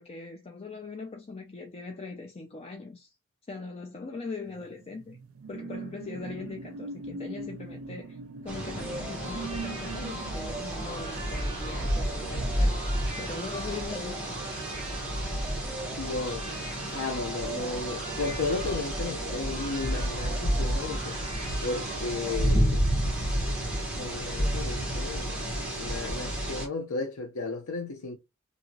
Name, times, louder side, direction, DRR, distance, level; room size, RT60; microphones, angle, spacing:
voice 1, 0.0-3.2 3.5-5.2 5.5-8.2 8.4-12.8 13.2-14.3, left 4 dB, 30° left, 0.4 m, -40 dB
sound 1, 4.5-13.5 13.9-14.1, right 3 dB, 80° right, 0.5 m, -42 dB
sound 2, 8.5-26.7, equal, 5° right, 1.1 m, -31 dB
sound 3, 8.8-22.5, right 2 dB, 35° right, 1.6 m, -42 dB
voice 2, 15.9-16.5 16.8-21.2 21.6-22.8 24.0-28.2, left 3 dB, 85° left, 0.6 m, -34 dB
2.9 x 2.7 x 2.7 m
head